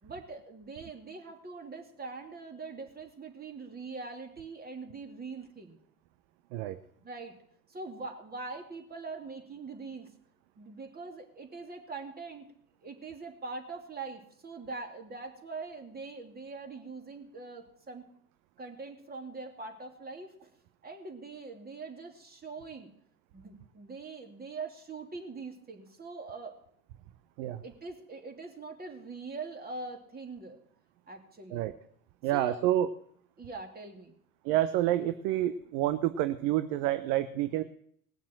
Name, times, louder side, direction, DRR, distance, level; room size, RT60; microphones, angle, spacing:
voice 1, 0.0-5.8 7.0-7.3 7.7-10.1 10.6-12.5 12.8-18.0 18.6-20.5 20.8-22.9 23.3-26.5 27.6-30.6 31.1-31.7 32.3-32.6 33.4-34.2, right 3 dB, 20° right, 3 dB, 3.0 m, -43 dB
voice 2, 32.2-32.9 34.4-37.6, right 13 dB, 60° right, 11 dB, 0.9 m, -28 dB
19.5 x 7.2 x 7.6 m, 0.67 s
hypercardioid pair, 85°, 43 cm